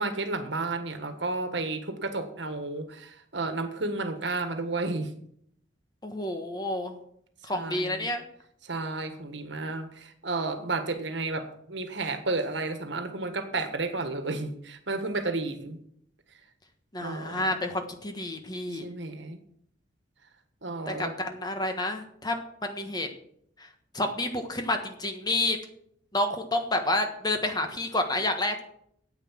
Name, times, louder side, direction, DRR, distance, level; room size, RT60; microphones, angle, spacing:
voice 1, 0.0-5.1 7.5-8.1 8.7-15.8 17.0-17.5 18.8-19.4 20.6-21.1, right 3 dB, 70° right, 8 dB, 1.5 m, -32 dB
voice 2, 6.0-6.9 7.5-8.2 16.9-18.8 20.9-23.1 23.9-25.6 26.1-28.6, left 1 dB, 20° left, 5 dB, 1.3 m, -29 dB
9.6 x 8.4 x 7.4 m, 0.68 s
head